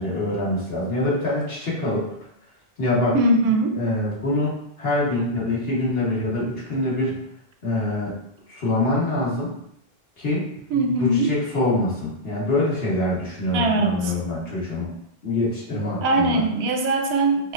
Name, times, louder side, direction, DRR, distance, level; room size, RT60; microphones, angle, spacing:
voice 1, 0.0-2.1 2.8-3.4 3.7-4.5 4.8-7.2 7.6-8.2 8.5-9.5 10.2-10.4 11.0-14.9 15.2-16.4, left 2 dB, 70° left, -6 dB, 1.4 m, -24 dB
voice 2, 3.1-3.7 10.7-11.3 13.5-14.1 16.0-17.5, right 2 dB, 85° right, 3 dB, 0.8 m, -21 dB
4.8 x 2.2 x 2.4 m, 0.75 s
omnidirectional pair, 1.0 m